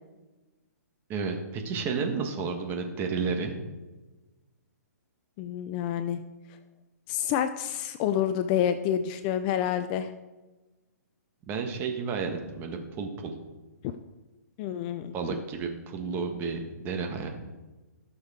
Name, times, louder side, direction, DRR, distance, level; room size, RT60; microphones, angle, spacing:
voice 1, 1.1-3.5 11.5-13.3 15.1-17.3, right 5 dB, 25° right, 4 dB, 1.4 m, -31 dB
voice 2, 5.4-6.2 7.1-10.1 13.8-13.9 14.6-15.1, left 10 dB, 30° left, 10 dB, 0.5 m, -28 dB
16.5 x 6.4 x 3.7 m, 1.2 s
hypercardioid pair, 140°, 9 cm